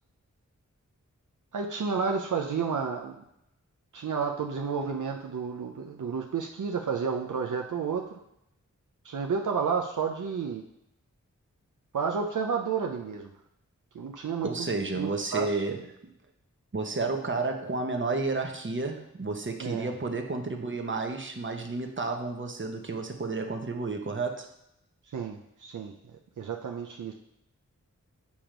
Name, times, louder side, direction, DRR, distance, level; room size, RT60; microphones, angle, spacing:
voice 1, 1.5-3.2 3.9-8.2 9.0-10.6 11.9-13.3 13.9-14.5 15.0-15.5 19.6-19.9 25.1-25.9 26.4-27.1, right 6 dB, 75° right, 2 dB, 0.6 m, -31 dB
voice 2, 14.4-15.9 16.7-24.5, right 3 dB, 40° right, 4 dB, 1.0 m, -31 dB
7.1 x 3.0 x 5.0 m, 0.80 s
cardioid pair, 45°, 31 cm